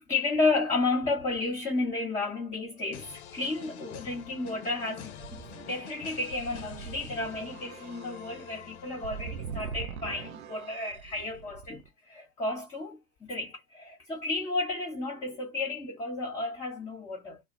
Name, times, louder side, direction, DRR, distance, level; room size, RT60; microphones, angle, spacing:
voice 1, 0.0-17.4, left 3 dB, 15° left, 1.1 m, -32 dB
sound 1, 2.9-9.9, left 9 dB, 50° left, 0.6 m, -47 dB
sound 2, 5.2-11.9, right 6 dB, 75° right, 0.5 m, -43 dB
2.3 x 2.0 x 2.7 m
figure-of-eight pair, 80°, 43 cm